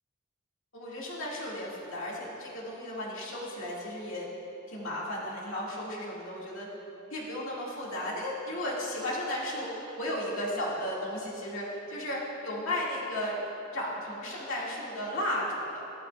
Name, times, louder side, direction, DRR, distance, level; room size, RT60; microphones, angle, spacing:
voice 1, 0.7-4.3 4.7-6.7 7.1-12.2 12.4-13.4 13.7-15.8, left 1 dB, 65° left, -5 dB, 2.3 m, -34 dB
14.0 x 12.5 x 2.5 m, 3.0 s
head